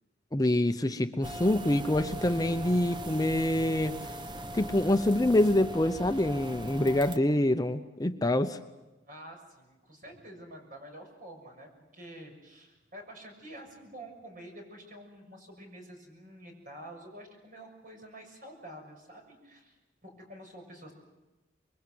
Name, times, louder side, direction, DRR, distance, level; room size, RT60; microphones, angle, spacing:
voice 1, 0.3-4.0 4.5-8.6, left 1 dB, 20° left, 8 dB, 0.7 m, -26 dB
sound 1, 1.2-7.2, right 1 dB, 25° right, 0.9 m, -40 dB
voice 2, 9.1-20.9, right 1 dB, 50° right, 3 dB, 6.4 m, -48 dB
26.0 x 22.5 x 7.8 m, 1.1 s
head